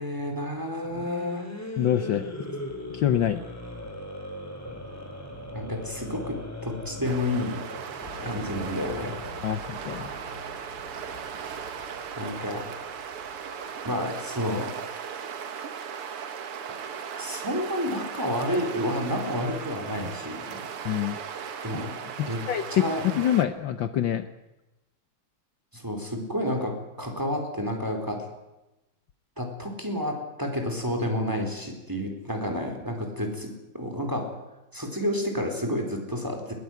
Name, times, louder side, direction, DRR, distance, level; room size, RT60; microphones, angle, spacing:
voice 1, 0.0-1.5 5.5-7.6 8.2-9.2 12.2-12.6 13.8-14.7 17.2-20.6 21.6-22.0 22.3-22.4 22.7-23.1 25.7-28.3 29.4-34.3 34.7-36.5, left 1 dB, 10° right, 3 dB, 4.3 m, -30 dB
sound 1, 0.8-9.6, left 1 dB, 5° left, 3.7 m, -39 dB
voice 2, 1.8-2.3 2.9-3.4 9.4-10.1 20.8-21.2 22.2-24.3, left 10 dB, 65° left, 10 dB, 1.6 m, -26 dB
sound 2, 7.0-23.4, right 7 dB, 90° right, 2.5 m, -37 dB
sound 3, 8.0-14.8, left 2 dB, 40° left, 3.7 m, -46 dB
21.0 x 19.5 x 9.4 m, 0.99 s
omnidirectional pair, 2.4 m